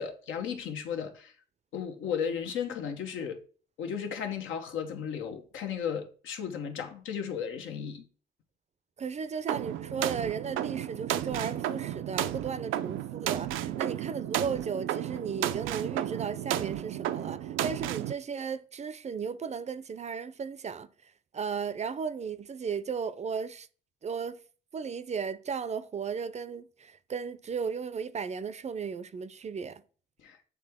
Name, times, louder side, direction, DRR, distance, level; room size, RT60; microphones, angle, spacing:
voice 1, 0.0-1.3 1.7-3.4 3.8-8.1 30.2-30.4, left 7 dB, 80° left, 1.1 m, -35 dB
voice 2, 9.0-20.9 21.3-23.7 24.0-24.4 24.7-29.8, right 6 dB, 35° right, 0.5 m, -35 dB
sound 1, 9.5-18.1, right 12 dB, 85° right, 0.5 m, -33 dB
8.4 x 3.4 x 3.5 m
cardioid pair, 90°, 20 cm